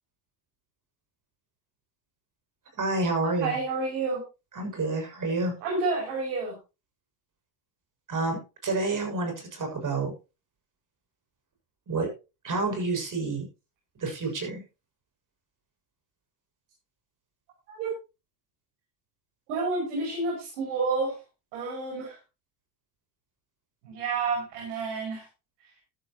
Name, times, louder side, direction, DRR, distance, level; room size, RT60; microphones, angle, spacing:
voice 1, 2.7-3.6 4.5-5.5 8.1-10.1 11.9-12.1 12.4-13.5 14.0-14.6, right 3 dB, 40° right, 4 dB, 6.8 m, -29 dB
voice 2, 3.3-4.2 5.6-6.5 17.7-17.9 19.5-21.2 21.5-22.1 23.8-25.2, right 3 dB, 85° right, -1 dB, 6.3 m, -29 dB
13.5 x 12.5 x 3.0 m, 0.29 s
supercardioid pair, 80°, 46 cm